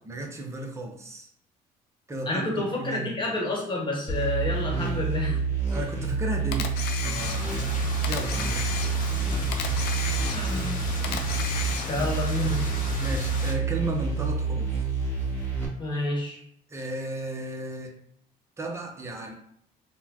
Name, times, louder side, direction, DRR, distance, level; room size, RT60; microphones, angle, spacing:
voice 1, 0.0-1.3 2.1-3.1 5.7-6.8 7.0-8.7 12.4-12.7 13.0-14.7 16.7-18.0 18.6-19.3, right 2 dB, 15° right, 2 dB, 0.7 m, -34 dB
voice 2, 2.3-5.4 10.2-11.0 11.9-12.6 15.8-16.4, left 2 dB, 30° left, -1 dB, 1.2 m, -29 dB
sound 1, 4.1-15.7, right 4 dB, 10° left, 0.9 m, -28 dB
Camera, 6.5-7.7 8.0-9.2 9.5-10.7 11.0-12.1, left 7 dB, 75° left, 0.5 m, -34 dB
sound 2, 7.1-13.5, left 1 dB, 55° left, 0.9 m, -36 dB
4.2 x 2.2 x 2.8 m, 0.67 s
cardioid pair, 110°, 17 cm